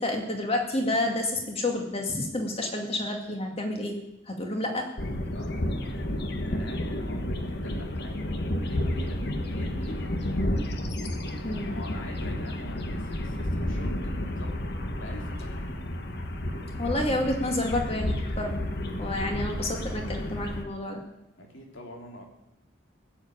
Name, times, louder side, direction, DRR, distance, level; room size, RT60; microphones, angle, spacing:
voice 1, 0.0-4.0 4.3-4.9 11.4-11.7 16.8-18.5 19.0-21.0, left 1 dB, 30° left, 2 dB, 2.2 m, -29 dB
sound 1, 5.0-20.6, left 1 dB, 55° left, 1.4 m, -31 dB
voice 2, 5.3-5.9 6.5-10.4 11.6-14.6 14.9-15.6 21.4-22.3, left 1 dB, 80° left, 1 dB, 3.0 m, -45 dB
15.5 x 7.4 x 8.6 m, 0.90 s
head